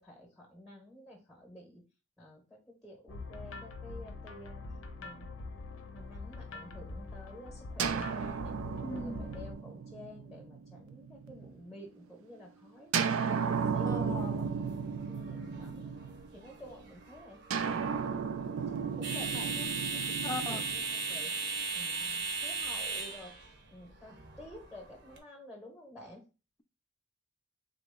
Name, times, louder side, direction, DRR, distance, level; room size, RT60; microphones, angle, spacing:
voice 1, 0.0-1.8 2.2-4.6 5.0-5.3 5.9-8.5 8.8-14.5 15.1-15.9 16.3-17.4 18.0-21.3 21.7-26.2, left 1 dB, ahead, 0.9 m, -51 dB
sound 1, 3.1-9.5, left 3 dB, 85° left, 0.6 m, -44 dB
sound 2, 7.8-11.6 12.9-16.5 17.5-21.6, right 6 dB, 75° right, 0.4 m, -34 dB
voice 2, 8.8-9.3 13.8-14.4 20.2-20.6, left 2 dB, 15° left, 0.3 m, -39 dB
sound 3, 13.9-25.2, right 4 dB, 55° right, 0.9 m, -38 dB
3.6 x 3.0 x 3.5 m
head